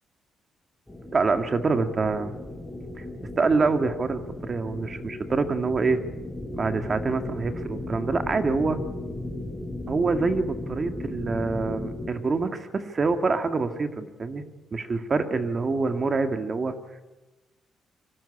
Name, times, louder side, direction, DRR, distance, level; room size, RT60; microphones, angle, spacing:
sound 1, 0.9-12.1, left 1 dB, 5° left, 3.3 m, -36 dB
voice 1, 1.1-2.4 3.0-3.1 3.4-6.0 6.5-8.8 9.9-14.4 14.7-16.7, right 4 dB, 35° right, 8 dB, 2.0 m, -26 dB
25.0 x 12.5 x 9.9 m, 1.1 s
cardioid pair, 90°, 0 cm